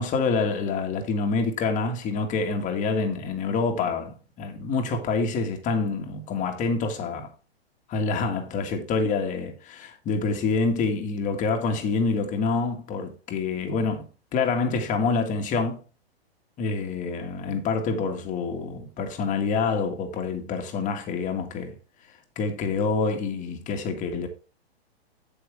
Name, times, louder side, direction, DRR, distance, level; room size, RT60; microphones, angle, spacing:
voice 1, 0.0-7.3 7.9-15.8 16.6-21.7 22.3-24.3, left 4 dB, 25° left, 1.8 m, -27 dB
8.0 x 8.0 x 3.4 m
hypercardioid pair, 125°, 32 cm